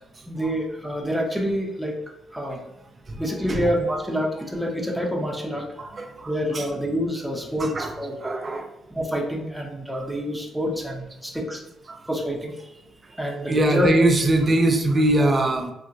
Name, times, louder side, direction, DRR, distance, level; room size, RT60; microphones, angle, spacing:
voice 1, 0.3-2.0 2.3-2.6 3.2-5.7 6.2-8.4 8.9-11.6 12.1-12.7 13.2-13.9, equal, ahead, -1 dB, 0.7 m, -27 dB
voice 2, 5.8-6.6 7.6-7.9 8.2-8.7 13.5-15.7, right 1 dB, 30° right, 5 dB, 0.4 m, -21 dB
3.9 x 2.1 x 2.5 m, 0.89 s
cardioid pair, 90°, 0 cm